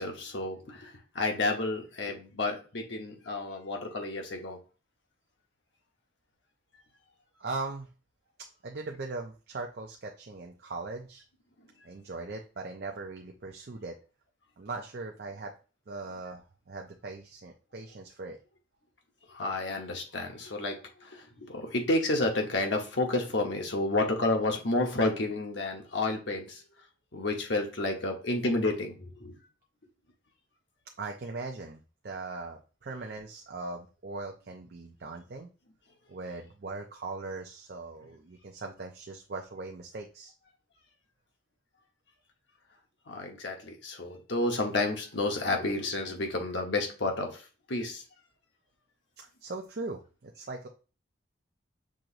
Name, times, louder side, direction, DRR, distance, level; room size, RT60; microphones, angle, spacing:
voice 1, 0.0-4.6 19.3-26.6 27.1-29.3 43.1-47.4 47.7-48.0, left 2 dB, 70° left, 2 dB, 1.1 m, -30 dB
voice 2, 7.4-7.9 8.6-11.2 11.8-14.0 14.6-15.5 15.9-18.4 31.0-35.5 36.1-40.3 49.2-50.7, right 3 dB, 55° right, 2 dB, 0.5 m, -40 dB
6.1 x 3.0 x 2.5 m, 0.34 s
head